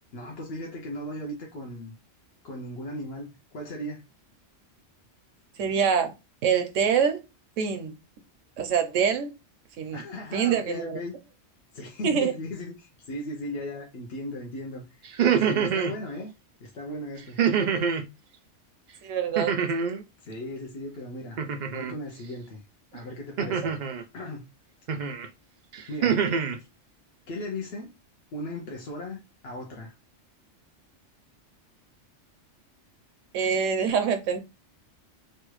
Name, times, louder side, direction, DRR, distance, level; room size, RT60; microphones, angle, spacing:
voice 1, 0.1-2.0 2.4-4.0 9.9-11.2 11.7-15.1 15.4-16.3 16.6-17.4 20.2-22.6 22.9-23.7 24.1-24.5 25.9-26.3 27.3-27.9 28.3-29.9, left 1 dB, 60° left, 0.9 m, -37 dB
voice 2, 5.6-6.1 6.4-7.2 7.6-8.0 8.6-9.3 9.8-10.0 10.3-11.0 12.0-12.3 19.0-19.5 33.3-34.4, right 7 dB, 85° right, 1.0 m, -25 dB
sound 1, 15.0-16.0 17.4-18.1 19.4-20.0 21.4-21.9 23.4-24.0 24.9-25.3 25.7-26.6, right 7 dB, 70° right, 0.4 m, -25 dB
3.2 x 2.4 x 3.0 m
omnidirectional pair, 1.3 m